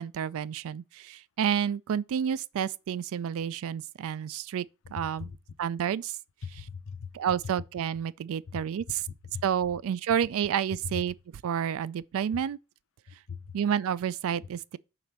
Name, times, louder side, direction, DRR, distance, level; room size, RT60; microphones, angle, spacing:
voice 1, 0.0-4.7 4.9-5.3 5.6-6.2 7.1-9.0 9.4-11.1 11.4-12.6 13.5-14.8, right 8 dB, 65° right, 0.3 m, -30 dB
voice 2, 4.8-5.4 6.4-7.1 8.5-8.6 9.3-9.4 10.8-11.0 13.1-13.6, left 6 dB, 60° left, 0.6 m, -40 dB
4.9 x 4.1 x 5.8 m
head